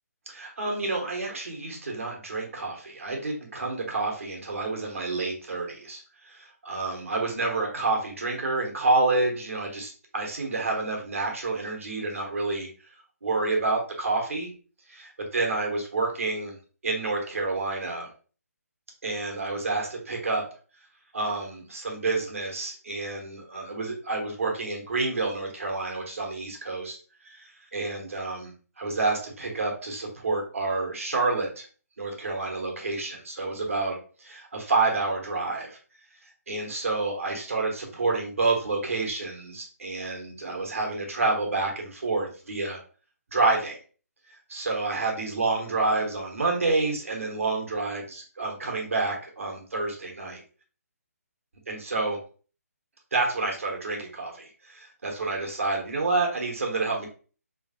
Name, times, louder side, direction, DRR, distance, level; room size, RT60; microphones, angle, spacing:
voice 1, 0.3-12.7 13.2-14.5 14.9-16.5 16.8-18.1 19.0-20.4 21.1-27.0 27.2-28.5 28.8-31.6 32.0-35.8 36.5-42.8 43.3-43.8 44.5-50.4 51.7-52.2 53.1-57.1, right 3 dB, 55° right, 1 dB, 1.2 m, -29 dB
3.3 x 3.1 x 2.6 m, 0.38 s
figure-of-eight pair, 140°, 9 cm